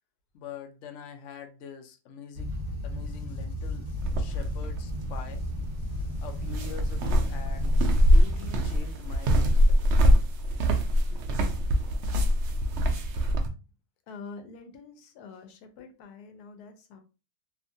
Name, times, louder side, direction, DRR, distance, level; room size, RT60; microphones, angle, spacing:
voice 1, 0.3-2.5 2.8-3.9 4.2-5.4 6.2-10.0 10.5-11.2 11.6-11.7, left 7 dB, 65° left, 0.7 m, -45 dB
sound 1, 2.3-8.5, equal, 35° right, 0.9 m, -35 dB
sound 2, 4.0-13.5, equal, 70° right, 0.6 m, -24 dB
voice 2, 5.8-6.2 14.1-17.0, left 4 dB, 85° left, 1.1 m, -46 dB
2.7 x 2.4 x 2.6 m
omnidirectional pair, 1.6 m